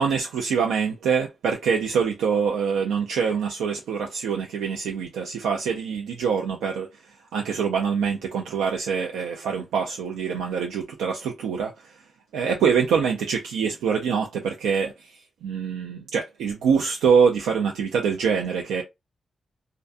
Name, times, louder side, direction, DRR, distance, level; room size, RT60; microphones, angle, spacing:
voice 1, 0.0-6.9 7.3-11.7 12.3-15.1 15.4-18.8, right 6 dB, 90° right, 0.3 m, -24 dB
2.4 x 2.1 x 2.5 m
supercardioid pair, 45°, 0 cm